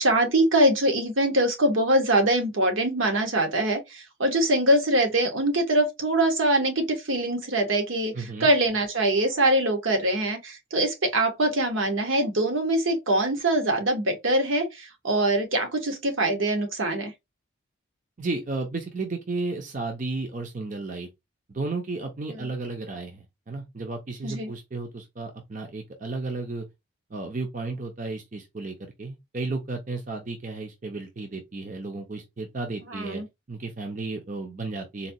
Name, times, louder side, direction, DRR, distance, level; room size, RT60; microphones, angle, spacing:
voice 1, 0.0-8.1 8.4-17.1 22.3-22.5 24.2-24.5 32.9-33.3, right 1 dB, 75° right, 1.0 m, -23 dB
voice 2, 8.1-8.5 18.2-21.1 21.5-26.7 27.1-33.2 33.5-35.1, right 3 dB, 40° right, 0.5 m, -33 dB
4.0 x 2.2 x 2.6 m
head